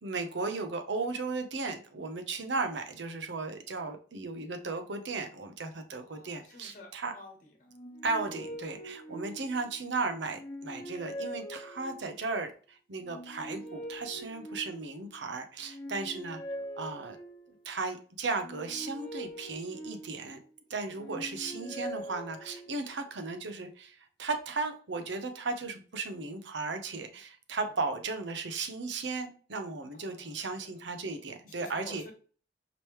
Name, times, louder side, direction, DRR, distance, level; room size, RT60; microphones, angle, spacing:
voice 1, 0.0-7.1 8.0-12.5 12.9-16.4 16.8-17.2 17.6-20.4 20.7-32.0, right 3 dB, 85° right, 6 dB, 0.8 m, -35 dB
voice 2, 6.0-7.7 9.3-9.5 14.1-14.4 16.4-16.7 20.9-21.1 29.9-30.8 31.5-32.1, left 2 dB, 45° left, 2 dB, 1.3 m, -52 dB
sound 1, 7.7-9.8 10.3-12.3 13.0-15.1 15.6-17.6 18.3-20.5 21.0-23.0, equal, 25° left, 1.0 m, -43 dB
5.0 x 3.2 x 3.0 m, 0.41 s
head